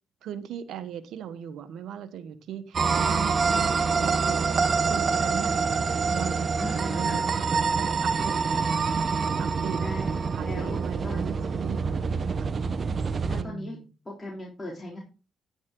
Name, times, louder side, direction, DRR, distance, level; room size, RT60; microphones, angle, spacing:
voice 1, 0.2-4.4 4.9-5.5 6.1-9.8 10.3-12.6 13.4-13.8, right 9 dB, 85° right, 1.2 m, -39 dB
sound 1, 2.7-13.4, right 5 dB, 45° right, 0.8 m, -26 dB
voice 2, 6.6-7.2 9.8-10.1 10.4-11.2 13.2-13.8 14.1-15.0, left 1 dB, 15° left, 3.8 m, -38 dB
10.0 x 9.5 x 3.7 m
cardioid pair, 90°, 0 cm